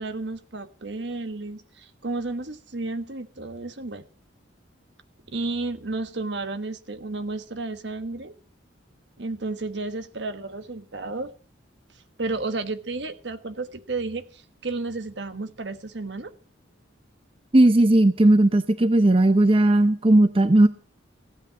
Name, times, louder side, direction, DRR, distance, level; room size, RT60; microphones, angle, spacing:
voice 1, 0.0-4.0 5.3-8.3 9.2-11.3 12.2-16.3, right 3 dB, 65° right, 1.3 m, -32 dB
voice 2, 17.5-20.7, right 1 dB, 30° right, 0.6 m, -17 dB
16.0 x 8.9 x 6.8 m
head